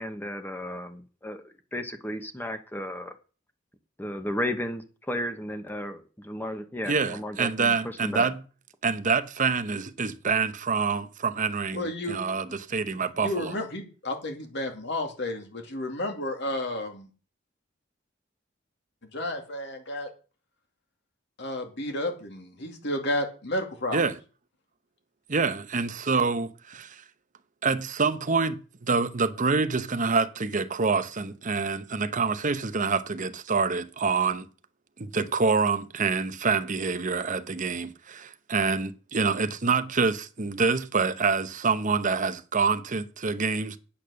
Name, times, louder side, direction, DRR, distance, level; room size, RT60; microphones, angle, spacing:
voice 1, 0.0-3.1 4.0-8.3, left 1 dB, 10° left, 1.1 m, -34 dB
voice 2, 6.9-8.4 8.8-13.5 23.9-24.2 25.3-27.0 27.6-34.5 35.0-43.8, right 4 dB, 40° right, 0.8 m, -26 dB
voice 3, 11.7-12.2 13.2-17.1 19.0-20.1 21.4-24.0, left 1 dB, 65° left, 2.4 m, -32 dB
8.6 x 8.5 x 6.4 m
head